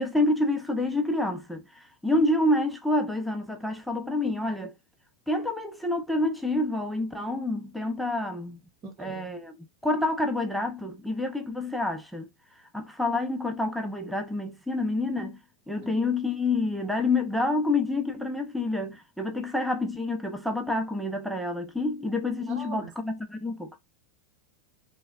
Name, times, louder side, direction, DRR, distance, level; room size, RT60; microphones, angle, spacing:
voice 1, 0.0-4.7 5.3-8.6 9.0-9.6 9.8-12.3 12.6-15.4 15.7-23.8, left 2 dB, ahead, 0.5 m, -28 dB
voice 2, 8.8-9.3 15.8-15.9 22.5-22.9, right 3 dB, 45° right, 1.2 m, -40 dB
3.3 x 2.1 x 2.2 m
hypercardioid pair, 120°, 3 cm